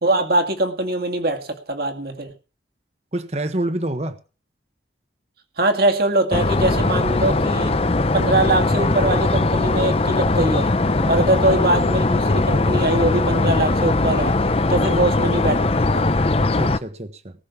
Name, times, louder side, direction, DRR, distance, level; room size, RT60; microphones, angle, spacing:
voice 1, 0.0-2.3 5.6-7.8 8.1-10.7 11.1-14.3 14.7-16.0, right 1 dB, 55° right, 2.2 m, -22 dB
voice 2, 3.1-4.2 11.0-11.2 14.6-14.9 16.4-17.3, right 1 dB, 35° right, 1.2 m, -27 dB
sound 1, 6.3-16.8, left 2 dB, 30° left, 0.7 m, -20 dB
19.0 x 6.5 x 7.1 m
head